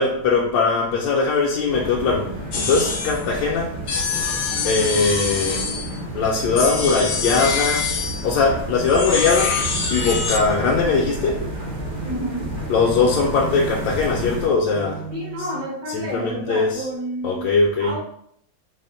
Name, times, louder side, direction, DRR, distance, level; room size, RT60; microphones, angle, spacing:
voice 1, 0.0-2.3 2.5-3.8 4.6-5.7 6.1-7.9 8.2-9.6 9.9-11.4 12.7-15.0 15.9-16.9 17.2-17.9, left 4 dB, 85° left, -2 dB, 1.3 m, -20 dB
sound 1, 1.7-14.5, equal, 50° right, 0.6 m, -31 dB
sound 2, 2.5-3.3 3.9-6.0 6.6-8.3 8.9-10.5, left 5 dB, 65° left, 0.8 m, -25 dB
sound 3, 9.6-15.6, right 5 dB, 90° right, 1.3 m, -35 dB
voice 2, 12.0-12.5 15.1-17.4 17.8-18.0, right 1 dB, 70° right, -4 dB, 1.9 m, -30 dB
4.1 x 2.1 x 3.8 m, 0.68 s
omnidirectional pair, 1.9 m